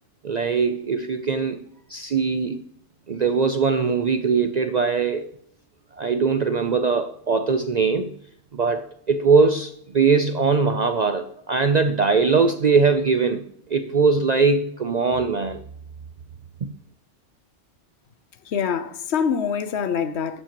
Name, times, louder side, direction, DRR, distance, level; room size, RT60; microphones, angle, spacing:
voice 1, 0.2-1.6 1.9-2.6 3.1-5.3 6.0-8.1 8.5-13.4 13.7-15.6 16.6-16.7, right 4 dB, 60° right, 0.4 m, -21 dB
voice 2, 18.5-20.4, left 7 dB, 60° left, 1.0 m, -25 dB
11.0 x 7.6 x 2.9 m
omnidirectional pair, 1.3 m